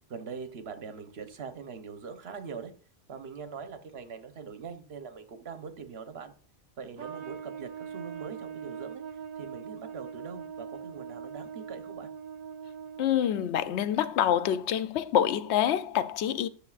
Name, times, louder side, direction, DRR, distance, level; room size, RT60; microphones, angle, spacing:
voice 1, 0.1-2.7 3.1-6.3 6.8-9.0 9.3-12.1, right 6 dB, 70° right, 1.1 m, -42 dB
Trumpet, 7.0-13.5, right 7 dB, 45° right, 0.7 m, -41 dB
voice 2, 13.0-16.5, left 10 dB, 90° left, 0.9 m, -26 dB
10.5 x 6.4 x 2.4 m
omnidirectional pair, 1.1 m